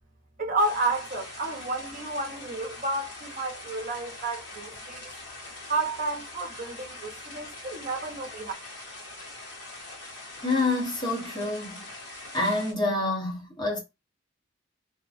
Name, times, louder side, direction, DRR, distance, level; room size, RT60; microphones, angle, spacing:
voice 1, 0.4-5.1 5.7-8.5, right 2 dB, 40° right, 0.8 m, -31 dB
sound 1, 0.6-12.7, left 2 dB, 55° left, 1.5 m, -43 dB
voice 2, 10.4-11.8 12.3-13.8, left 2 dB, 20° left, 1.1 m, -27 dB
2.8 x 2.2 x 2.4 m
head